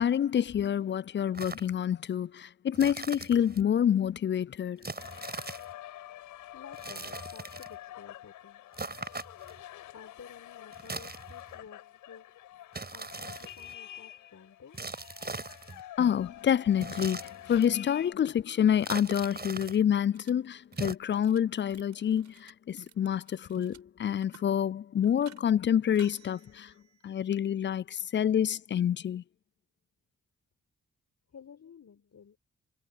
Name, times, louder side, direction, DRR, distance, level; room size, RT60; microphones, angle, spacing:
voice 1, 0.0-4.9 16.0-26.7 27.0-29.2, left 9 dB, 35° left, 0.4 m, -27 dB
sound 1, 1.3-1.7 2.7-3.6 4.8-5.7 6.7-7.8 8.7-9.6 10.7-11.6 12.7-13.7 14.7-15.8 16.7-17.7 18.7-19.8 20.7-20.9, right 3 dB, 30° right, 5.8 m, -40 dB
sound 2, 4.9-18.1, left 13 dB, 80° left, 6.3 m, -47 dB
voice 2, 6.5-8.7 9.9-12.4 12.9-14.9 31.3-32.4, left 7 dB, 55° left, 5.0 m, -52 dB
sound 3, 20.1-20.3 20.6-21.4 21.7-23.8 24.1-24.6 25.0-25.4 25.9-27.3, right 7 dB, 60° right, 5.2 m, -57 dB
hypercardioid pair, 40°, 31 cm